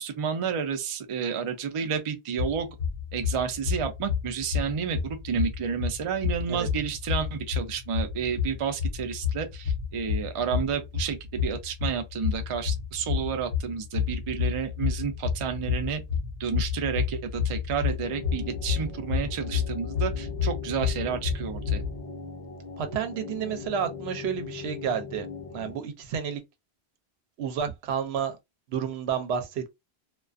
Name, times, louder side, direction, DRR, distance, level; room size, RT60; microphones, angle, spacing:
voice 1, 0.0-2.7 3.1-16.0 16.4-21.8, right 7 dB, 50° right, 0.4 m, -31 dB
sound 1, 2.4-22.0, left 7 dB, 70° left, 0.8 m, -30 dB
sound 2, 18.0-25.8, left 5 dB, 40° left, 0.6 m, -40 dB
voice 2, 22.8-25.3 25.5-26.4 27.4-28.4 28.7-29.7, right 7 dB, 80° right, 0.8 m, -30 dB
2.3 x 2.2 x 2.4 m
omnidirectional pair, 1.1 m